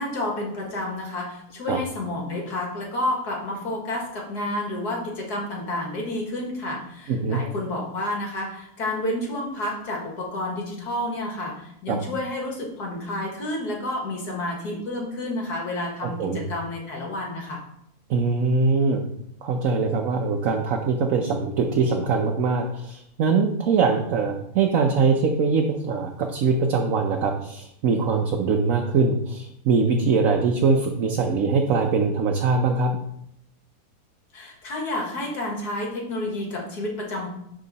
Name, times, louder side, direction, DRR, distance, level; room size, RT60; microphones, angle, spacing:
voice 1, 0.0-17.6 34.3-37.3, left 1 dB, 70° left, -1 dB, 2.2 m, -30 dB
voice 2, 7.1-7.4 11.9-12.0 16.0-16.4 18.1-19.0 19.4-32.9, right 4 dB, 60° right, 3 dB, 1.0 m, -22 dB
10.5 x 3.8 x 4.0 m, 0.75 s
omnidirectional pair, 1.7 m